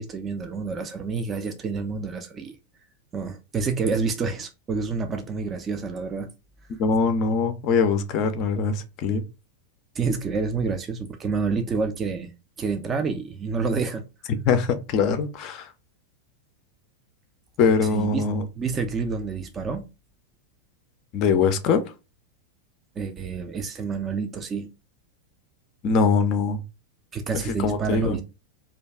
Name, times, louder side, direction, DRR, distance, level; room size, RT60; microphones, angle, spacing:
voice 1, 0.0-2.5 3.1-6.3 10.0-12.3 12.6-14.0 17.9-18.2 18.6-19.9 23.0-24.7 27.1-28.2, right 4 dB, 25° right, 0.4 m, -28 dB
voice 2, 6.8-9.2 14.5-15.7 17.6-18.5 21.1-21.8 25.8-26.6 27.3-28.2, left 5 dB, 40° left, 0.4 m, -22 dB
2.4 x 2.2 x 3.4 m
figure-of-eight pair, 90°, 0 cm